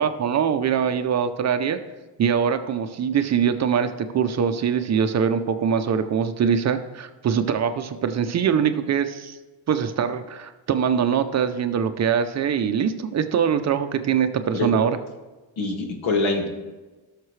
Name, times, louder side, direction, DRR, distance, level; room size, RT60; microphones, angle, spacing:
voice 1, 0.0-1.8 2.2-9.4 9.7-15.0, right 7 dB, 40° right, 8 dB, 0.5 m, -23 dB
voice 2, 15.6-16.5, left 3 dB, 85° left, 2 dB, 2.0 m, -24 dB
17.0 x 6.6 x 3.2 m, 1.2 s
cardioid pair, 180°, 45 cm